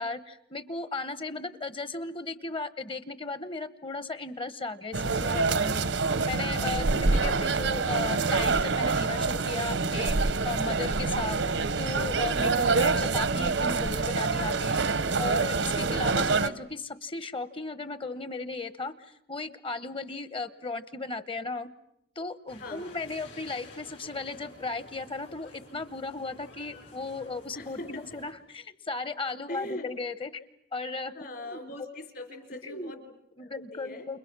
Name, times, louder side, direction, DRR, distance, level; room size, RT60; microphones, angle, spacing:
voice 1, 0.0-5.8 6.3-11.4 11.8-14.8 15.2-21.7 22.2-30.3 30.7-31.1 31.4-31.6 32.6-32.9 33.4-34.2, left 3 dB, 30° left, 14 dB, 1.0 m, -36 dB
sound 1, 4.9-16.5, right 4 dB, 80° right, 1.0 m, -26 dB
voice 2, 6.9-7.6 22.6-23.1 27.5-28.2 29.5-29.9 31.1-34.1, left 1 dB, 55° left, 5 dB, 4.0 m, -42 dB
sound 2, 22.5-28.3, left 2 dB, 85° left, 7.9 m, -51 dB
29.5 x 29.5 x 6.1 m, 0.78 s
head